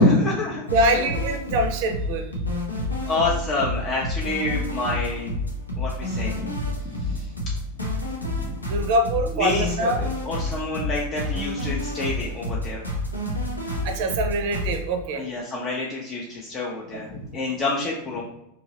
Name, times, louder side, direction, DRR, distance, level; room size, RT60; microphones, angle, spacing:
voice 1, 0.0-1.0 3.0-5.3 5.8-6.5 6.8-7.3 8.4-8.5 9.3-12.8 15.1-18.2, left 2 dB, 25° left, -4 dB, 0.6 m, -27 dB
sound 1, 0.7-14.8, left 1 dB, 80° left, 0.7 m, -29 dB
voice 2, 0.7-2.2 8.6-10.0 13.8-15.2, right 1 dB, 50° right, 4 dB, 0.5 m, -24 dB
2.9 x 2.7 x 2.8 m, 0.84 s
figure-of-eight pair, 90°, 0 cm